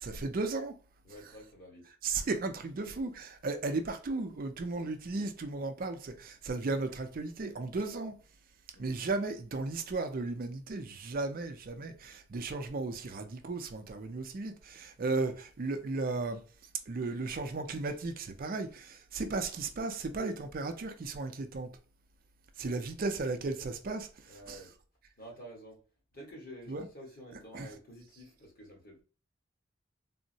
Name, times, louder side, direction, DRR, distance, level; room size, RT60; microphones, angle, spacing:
voice 1, 0.0-0.7 2.0-8.1 8.8-16.4 16.9-21.7 22.6-24.1 24.5-24.6 26.7-26.9 27.5-27.7, right 3 dB, 45° right, 0.4 m, -35 dB
voice 2, 1.0-1.9 8.7-9.0 24.3-24.7 25.2-25.8 26.1-29.0, equal, 50° left, 1.4 m, -50 dB
3.6 x 2.0 x 2.6 m
head